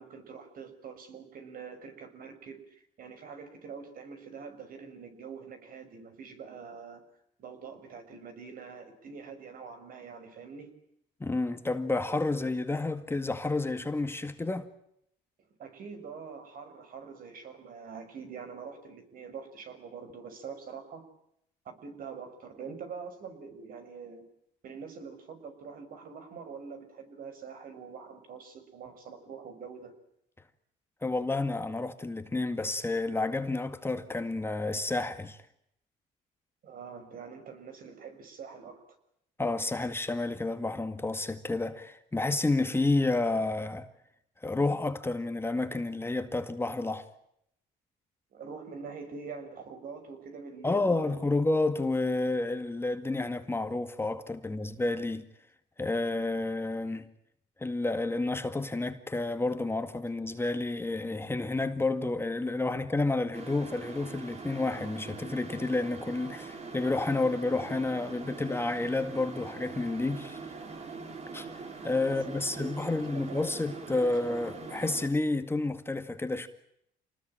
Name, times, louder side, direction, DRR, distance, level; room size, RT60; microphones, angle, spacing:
voice 1, 0.0-7.0 7.4-10.7 15.6-21.1 21.6-24.3 24.6-30.0 36.6-38.8 48.3-51.2 72.1-73.4, right 5 dB, 55° right, 6.3 m, -45 dB
voice 2, 11.2-14.7 31.0-35.4 39.4-43.9 44.4-47.1 50.6-55.3 55.8-57.1 57.6-70.4 71.3-71.5 71.8-76.5, left 2 dB, 15° left, 1.9 m, -30 dB
sound 1, 63.3-75.1, right 4 dB, 40° right, 4.7 m, -43 dB
28.0 x 20.0 x 8.9 m
cardioid pair, 110°, 17 cm